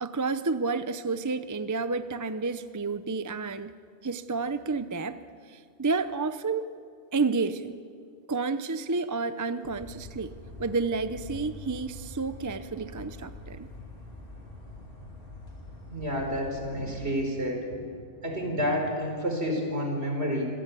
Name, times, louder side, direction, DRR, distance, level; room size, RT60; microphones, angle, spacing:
voice 1, 0.0-3.7 4.0-5.2 5.5-6.7 7.1-7.8 8.3-10.3 10.6-13.7, right 4 dB, 20° right, 11 dB, 0.5 m, -30 dB
sound 1, 9.6-17.1, left 2 dB, 50° left, 3.5 m, -45 dB
voice 2, 15.9-17.8 18.2-20.4, equal, 65° right, 2 dB, 4.8 m, -29 dB
26.5 x 16.0 x 8.5 m, 2.2 s
omnidirectional pair, 1.2 m